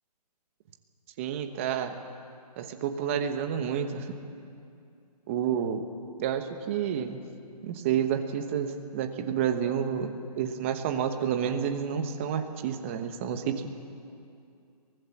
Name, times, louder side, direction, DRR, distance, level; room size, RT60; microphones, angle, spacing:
voice 1, 1.2-1.9 2.6-4.1 5.3-5.8 6.2-7.2 7.6-10.1 10.4-13.7, right 8 dB, 20° right, 7 dB, 1.1 m, -29 dB
23.5 x 19.0 x 7.2 m, 2.5 s
hypercardioid pair, 160°, 21 cm